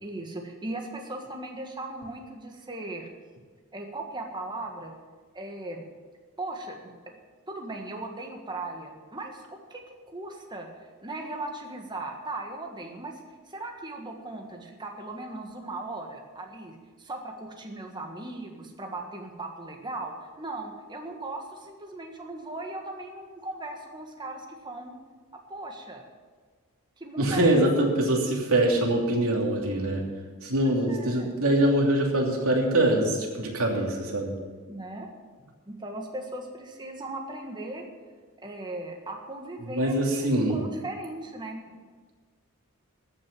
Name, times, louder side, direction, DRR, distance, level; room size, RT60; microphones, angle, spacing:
voice 1, 0.0-3.1 3.7-4.9 5.3-5.8 6.4-7.2 7.5-13.2 13.5-24.9 25.5-26.0 27.0-27.6 30.6-31.3 34.7-35.1 35.7-37.8 38.4-41.6, right 2 dB, 20° right, 2 dB, 1.6 m, -38 dB
voice 2, 27.2-30.0 30.4-34.3 39.6-40.6, right 1 dB, 70° right, 0 dB, 2.9 m, -24 dB
14.0 x 6.4 x 9.6 m, 1.5 s
head